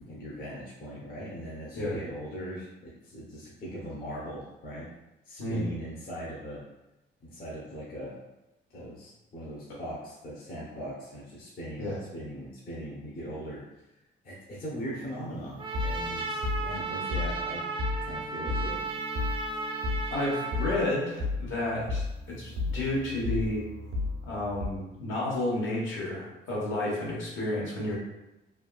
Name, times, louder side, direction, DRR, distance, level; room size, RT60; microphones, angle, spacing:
voice 1, 0.0-4.9 5.2-6.6 7.2-8.2 8.7-13.6 14.2-17.6 18.0-18.9, equal, 50° left, -6 dB, 0.8 m, -40 dB
sound 1, 14.8-24.7, left 3 dB, 85° right, 0.8 m, -34 dB
Trumpet, 15.6-20.9, right 3 dB, 25° right, 0.4 m, -34 dB
voice 2, 20.1-23.6 24.2-27.9, left 1 dB, 70° left, -5 dB, 1.1 m, -31 dB
3.3 x 2.3 x 2.3 m, 0.95 s
cardioid pair, 90°, 20 cm